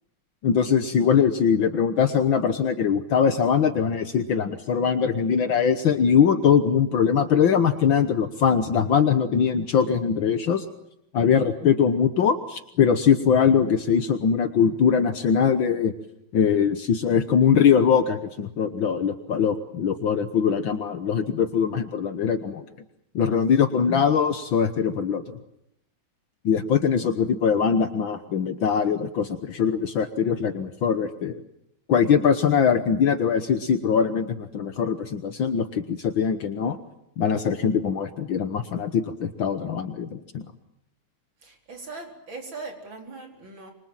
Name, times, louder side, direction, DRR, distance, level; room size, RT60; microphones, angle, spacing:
voice 1, 0.4-10.7 11.1-15.9 16.3-22.7 23.2-25.4 26.5-31.4 31.9-36.8 37.2-40.4, left 7 dB, 65° left, 9 dB, 2.0 m, -22 dB
voice 2, 41.4-43.7, right 3 dB, 60° right, 4 dB, 5.1 m, -40 dB
27.5 x 25.0 x 7.5 m, 0.79 s
omnidirectional pair, 2.3 m